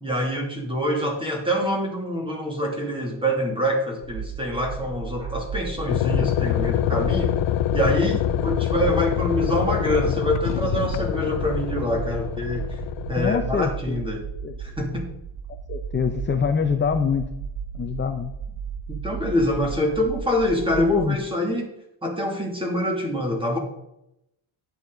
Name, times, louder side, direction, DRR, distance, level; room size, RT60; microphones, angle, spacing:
voice 1, 0.0-7.4 7.7-12.7 13.1-14.2 14.6-15.1 18.9-21.7 22.0-23.6, equal, 10° right, 0 dB, 2.7 m, -25 dB
sound 1, 4.0-21.2, right 6 dB, 30° right, 1.0 m, -34 dB
sound 2, 5.9-13.4, left 13 dB, 60° left, 0.6 m, -25 dB
voice 2, 13.1-14.0 14.4-14.5 15.7-17.2 17.7-18.3 20.7-21.2, left 6 dB, 25° left, 6 dB, 0.7 m, -25 dB
10.5 x 9.6 x 3.9 m, 0.83 s
cardioid pair, 150°, 50 cm